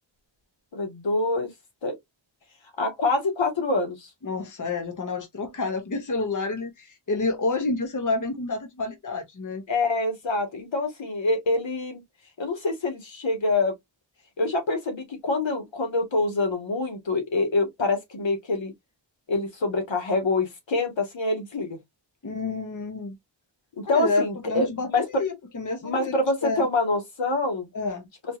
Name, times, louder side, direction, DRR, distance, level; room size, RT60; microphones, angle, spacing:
voice 1, 0.7-1.5 1.8-2.0 2.8-4.1 9.7-12.0 12.4-13.7 14.4-18.7 19.3-21.8 23.8-25.0 25.8-27.7, left 2 dB, 75° left, 1.7 m, -26 dB
voice 2, 4.2-9.6 22.2-23.1 23.9-26.1 26.4-26.7 27.7-28.0, left 3 dB, 40° left, 1.0 m, -29 dB
4.3 x 2.9 x 2.5 m
wide cardioid pair, 115°, 46 cm